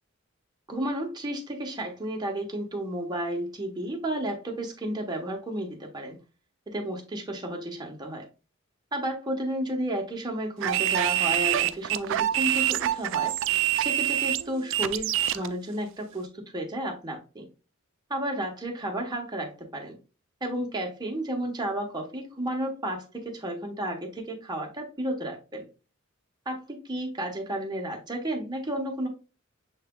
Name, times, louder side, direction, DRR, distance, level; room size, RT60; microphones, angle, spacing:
voice 1, 0.7-6.2 6.7-8.3 8.9-17.5 18.1-20.0 20.4-25.7 26.5-29.1, right 1 dB, 20° right, 1.0 m, -32 dB
sound 1, 10.6-15.5, right 12 dB, 65° right, 0.3 m, -26 dB
6.7 x 3.2 x 2.2 m
head